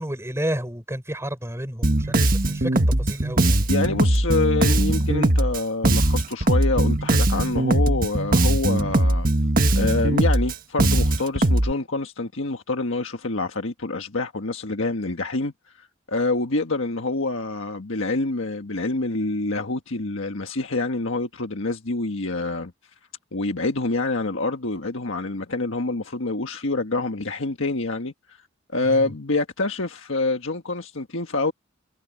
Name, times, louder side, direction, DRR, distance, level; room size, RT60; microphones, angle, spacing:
voice 1, 0.0-3.6 28.8-29.1, right 1 dB, 15° right, 5.7 m, -31 dB
Bass guitar, 1.8-11.7, right 1 dB, 45° right, 1.5 m, -20 dB
voice 2, 3.7-9.3 9.7-22.7 23.3-28.4 28.7-31.5, left 3 dB, 75° left, 1.5 m, -26 dB
head